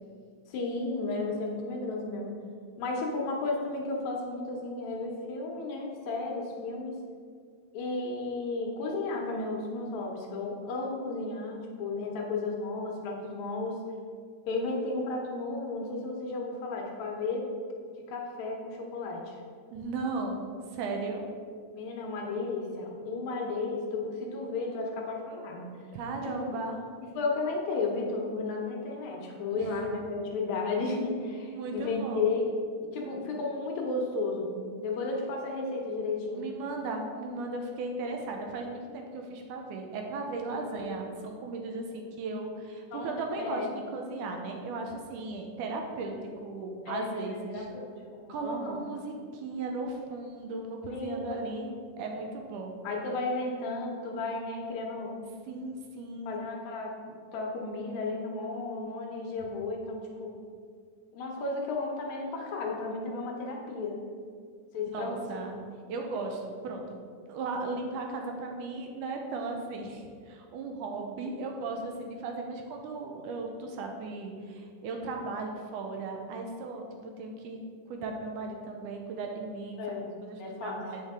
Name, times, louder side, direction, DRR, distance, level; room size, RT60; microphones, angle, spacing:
voice 1, 0.5-2.3 2.8-7.0 7.7-13.9 14.5-17.5 18.1-19.4 21.7-25.7 26.2-26.4 27.2-32.5 32.8-36.4 40.6-41.0 42.9-43.7 46.9-47.9 48.2-48.8 50.9-51.4 52.8-55.1 56.3-60.4 61.1-64.0 64.7-65.2 79.8-80.1 80.4-80.8, left 3 dB, 70° left, -1 dB, 2.1 m, -33 dB
voice 2, 19.7-21.3 25.9-26.8 29.6-29.7 31.4-32.3 36.4-43.7 43.9-46.2 46.4-47.7 48.3-52.7 55.5-56.4 64.9-65.6 65.9-67.0 67.3-77.6 77.9-79.8 80.2-81.0, right 3 dB, 80° right, 2 dB, 2.2 m, -36 dB
8.4 x 5.7 x 3.6 m, 2.1 s
omnidirectional pair, 3.7 m